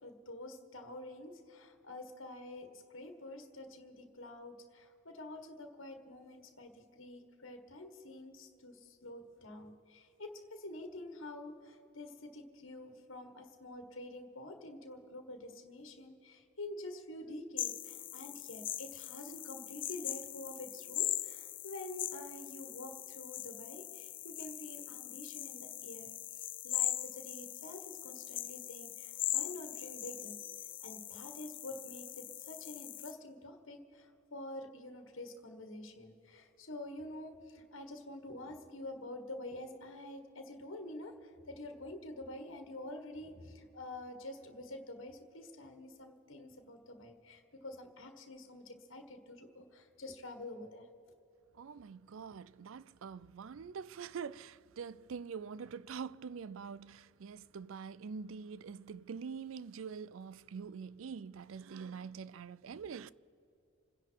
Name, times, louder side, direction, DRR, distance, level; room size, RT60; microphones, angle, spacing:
voice 1, 0.0-26.2 26.6-30.4 30.8-50.9, left 1 dB, 75° left, 1.6 m, -48 dB
sound 1, 17.6-33.1, left 13 dB, 40° left, 0.6 m, -41 dB
voice 2, 51.5-63.1, right 6 dB, 75° right, 0.4 m, -45 dB
27.5 x 10.5 x 4.6 m
head